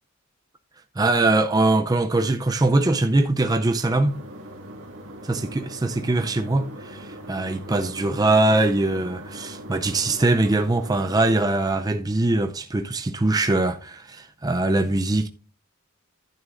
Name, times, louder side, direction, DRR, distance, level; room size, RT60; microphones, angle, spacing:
voice 1, 1.0-4.2 5.3-15.3, right 2 dB, 15° right, 0.4 m, -22 dB
sound 1, 4.0-11.2, equal, 65° right, 2.0 m, -40 dB
11.0 x 9.3 x 2.5 m
head